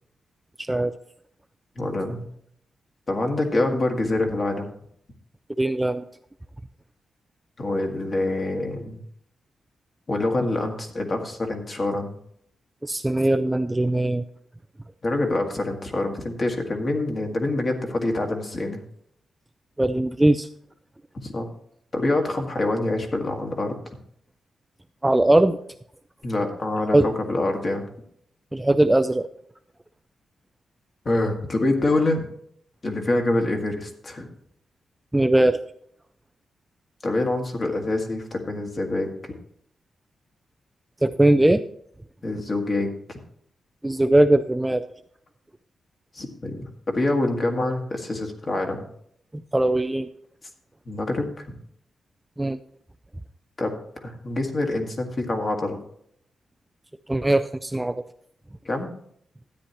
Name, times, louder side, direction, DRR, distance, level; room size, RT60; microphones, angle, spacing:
voice 1, 0.6-1.0 5.6-6.0 12.8-14.2 19.8-20.5 25.0-25.6 26.9-27.1 28.5-29.3 35.1-35.6 41.0-41.6 43.8-44.8 49.3-50.1 52.4-52.6 57.1-58.0, right 1 dB, 10° right, 9 dB, 0.3 m, -20 dB
voice 2, 1.8-2.2 3.1-4.7 7.6-9.0 10.1-12.2 15.0-18.8 21.2-21.5 21.9-23.8 26.2-27.9 31.1-32.3 32.8-34.3 37.0-39.3 42.2-43.2 46.1-48.9 50.9-51.6 53.6-55.8 58.7-58.9, left 2 dB, 35° left, 2 dB, 1.8 m, -26 dB
13.0 x 9.6 x 2.9 m, 0.67 s
wide cardioid pair, 125°, 0 cm